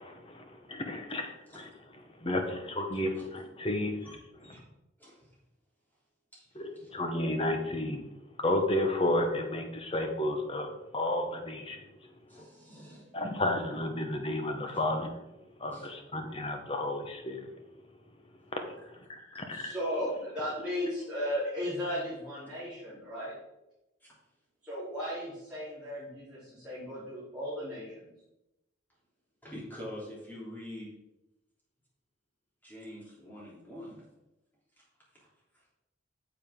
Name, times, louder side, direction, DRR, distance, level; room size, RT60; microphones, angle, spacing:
voice 1, 0.0-1.7 2.2-4.0 6.6-8.0 8.4-11.8 13.1-15.1 15.6-17.5 18.5-18.6 19.4-19.7, left 1 dB, 30° left, 5 dB, 1.0 m, -32 dB
voice 2, 4.0-4.6 5.0-5.3 6.3-6.9 12.3-13.1 15.7-15.9 19.1-19.4 24.0-24.1 29.4-30.9 32.6-34.0 34.8-34.9 35.5-35.7, left 1 dB, 10° left, -6 dB, 3.3 m, -46 dB
voice 3, 19.5-23.3 24.6-28.1, equal, 5° right, -12 dB, 3.5 m, -35 dB
9.2 x 7.3 x 3.7 m, 0.93 s
head